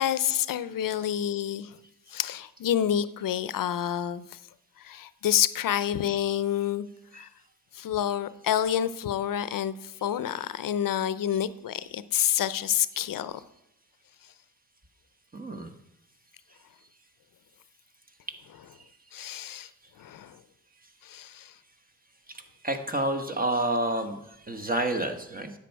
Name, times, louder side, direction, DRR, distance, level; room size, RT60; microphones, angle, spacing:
voice 1, 0.0-1.8 2.1-4.4 4.8-6.9 7.1-7.3 7.7-13.4 19.1-19.7 20.0-20.4 21.0-21.5, left 10 dB, 75° left, 15 dB, 0.6 m, -28 dB
voice 2, 15.3-15.7 22.6-24.2 24.5-25.5, right 1 dB, 25° right, 6 dB, 1.3 m, -29 dB
10.5 x 7.2 x 4.6 m, 0.83 s
cardioid pair, 60°, 33 cm